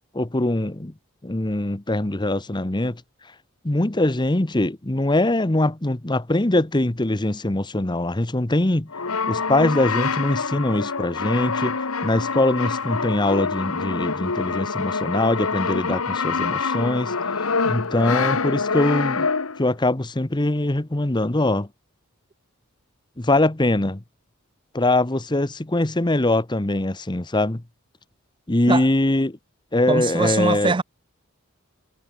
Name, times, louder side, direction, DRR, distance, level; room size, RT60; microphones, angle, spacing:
voice 1, 0.1-0.9 1.2-3.0 3.6-8.9 9.3-17.1 17.6-19.3 19.6-21.7 23.2-24.0 24.7-27.6 28.5-29.4 29.7-30.7, left 1 dB, 20° left, 1.0 m, -22 dB
Brass instrument, 8.9-19.7, left 4 dB, 80° left, 1.5 m, -26 dB
voice 2, 29.9-30.8, right 4 dB, 25° right, 0.5 m, -22 dB
head